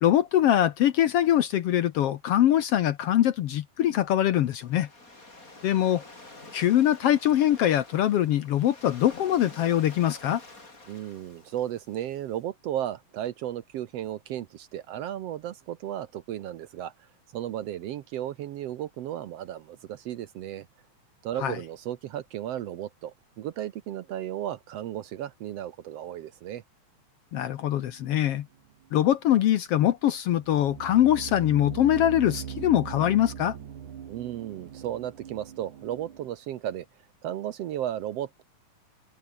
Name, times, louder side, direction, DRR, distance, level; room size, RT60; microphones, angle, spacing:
voice 1, 0.0-4.9 5.6-6.0 6.5-10.4 21.4-21.6 27.3-28.5 28.9-33.6, left 11 dB, 65° left, 1.6 m, -23 dB
Waves surf, 4.1-12.3, left 2 dB, 25° left, 5.7 m, -49 dB
voice 2, 10.9-16.9 17.3-20.7 21.2-26.6 34.1-36.9 37.2-38.4, right 11 dB, 70° right, 1.7 m, -34 dB
sound 1, 27.8-28.1 28.6-28.7 30.4-36.3, right 8 dB, 85° right, 3.8 m, -40 dB
omnidirectional pair, 3.4 m